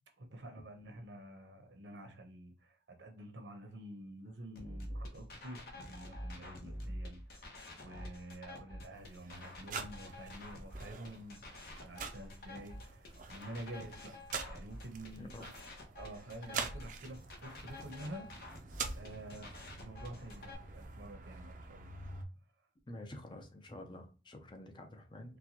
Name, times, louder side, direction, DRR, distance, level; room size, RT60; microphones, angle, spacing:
voice 1, 0.2-11.4 11.8-14.1 14.5-15.3 15.9-18.3 18.9-21.9, right 1 dB, 80° right, 0.8 m, -49 dB
sound 1, 4.6-20.6, left 1 dB, 55° left, 0.9 m, -48 dB
sound 2, 8.9-22.2, right 4 dB, 45° right, 0.5 m, -46 dB
voice 2, 15.2-15.5 22.9-25.4, left 1 dB, 25° left, 0.5 m, -49 dB
4.0 x 2.2 x 2.9 m
head